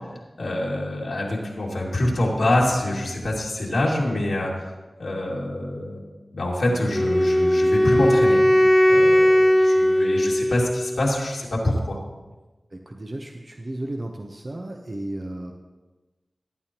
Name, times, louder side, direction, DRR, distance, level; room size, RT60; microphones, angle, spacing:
voice 1, 0.4-4.6 5.0-6.0 6.3-12.0, left 1 dB, 90° left, -4 dB, 2.4 m, -25 dB
Wind instrument woodwind instrument, 6.9-11.0, equal, 15° left, 0.6 m, -18 dB
voice 2, 12.7-15.5, right 1 dB, 50° right, 2 dB, 1.0 m, -34 dB
18.0 x 9.1 x 3.0 m, 1.2 s
cardioid pair, 40°, 0 cm